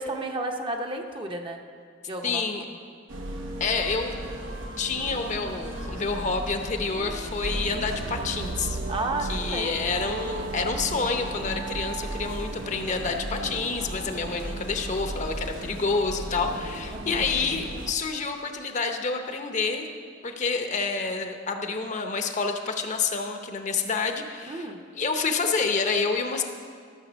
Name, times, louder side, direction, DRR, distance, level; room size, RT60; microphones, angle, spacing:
voice 1, 0.0-1.6 2.1-2.4 8.9-9.7 16.9-17.2 24.5-24.8, right 2 dB, 25° right, 3 dB, 0.7 m, -32 dB
voice 2, 2.2-2.6 3.6-4.1 4.8-8.8 9.3-19.9 20.2-24.7 24.9-26.4, left 4 dB, 40° left, 5 dB, 0.8 m, -28 dB
sound 1, 3.1-17.9, right 1 dB, 90° right, 1.2 m, -36 dB
sound 2, 7.5-13.8, right 4 dB, 40° right, 0.3 m, -38 dB
13.5 x 7.0 x 6.2 m, 2.1 s
head